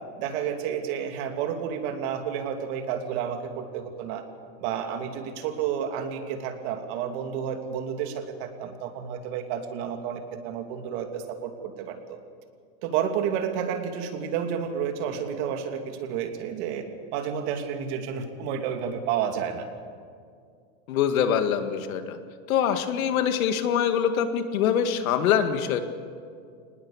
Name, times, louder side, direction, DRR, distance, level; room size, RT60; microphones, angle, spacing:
voice 1, 0.2-4.2 4.6-12.2 12.8-16.8 17.1-19.6, right 8 dB, 50° right, 5 dB, 2.7 m, -30 dB
voice 2, 20.9-22.2 22.5-25.8, left 8 dB, 80° left, 8 dB, 2.1 m, -24 dB
24.5 x 20.0 x 7.2 m, 2.2 s
supercardioid pair, 160°, 41 cm